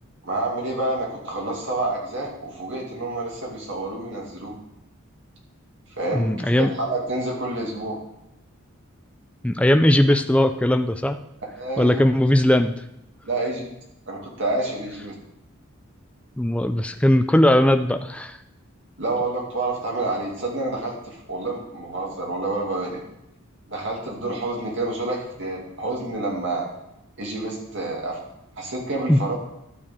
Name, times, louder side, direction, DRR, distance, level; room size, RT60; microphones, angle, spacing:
voice 1, 0.2-4.5 6.0-8.0 11.5-12.0 13.2-13.6 14.1-15.1 19.0-23.0 23.7-26.7 27.2-28.2 28.6-29.3, right 2 dB, 60° right, -2 dB, 2.4 m, -28 dB
voice 2, 6.1-6.7 9.4-11.2 11.8-12.7 16.4-18.4 29.1-29.2, left 1 dB, 5° left, 7 dB, 0.4 m, -19 dB
12.5 x 6.8 x 3.6 m, 0.83 s
head